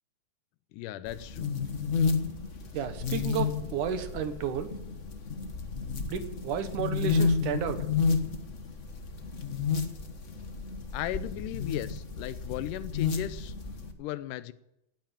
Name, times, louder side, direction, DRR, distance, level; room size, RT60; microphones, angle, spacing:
voice 1, 0.7-1.5 10.9-13.5 14.0-14.5, left 14 dB, 80° left, 14 dB, 2.3 m, -36 dB
sound 1, 1.1-13.9, left 5 dB, 60° left, 0.7 m, -31 dB
voice 2, 2.7-4.7 6.1-7.8, right 7 dB, 75° right, 10 dB, 2.7 m, -32 dB
17.0 x 9.1 x 8.8 m, 0.84 s
omnidirectional pair, 3.7 m